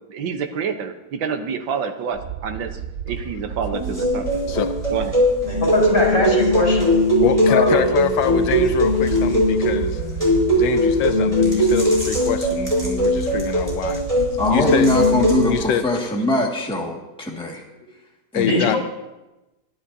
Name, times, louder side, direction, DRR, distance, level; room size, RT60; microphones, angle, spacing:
voice 1, 0.1-2.8 3.1-4.6 4.9-5.2, right 6 dB, 80° right, 7 dB, 1.7 m, -28 dB
sound 1, 2.1-15.7, right 9 dB, 60° right, 0.7 m, -33 dB
sound 2, 3.7-15.5, equal, 15° right, 5.0 m, -20 dB
voice 2, 5.6-6.9 7.5-7.8 18.4-18.8, left 2 dB, 50° left, -4 dB, 4.7 m, -20 dB
voice 3, 7.2-10.0 10.5-14.0 14.5-14.9 15.5-15.8 18.3-18.8, left 10 dB, 80° left, 10 dB, 1.4 m, -25 dB
voice 4, 14.4-17.6 18.3-18.8, left 1 dB, 5° left, -1 dB, 1.7 m, -22 dB
22.5 x 12.0 x 2.7 m, 1.0 s
omnidirectional pair, 2.0 m